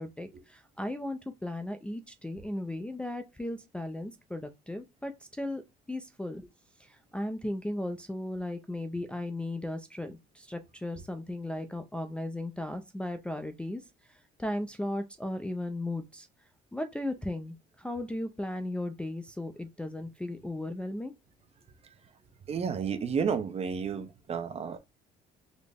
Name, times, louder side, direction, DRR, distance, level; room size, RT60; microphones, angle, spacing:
voice 1, 0.0-5.6 5.9-6.5 6.8-13.8 14.1-16.3 16.7-21.1, left 1 dB, 5° left, 0.4 m, -36 dB
voice 2, 22.5-24.8, right 6 dB, 35° right, 0.7 m, -31 dB
4.0 x 2.1 x 3.4 m
cardioid pair, 110°, 17 cm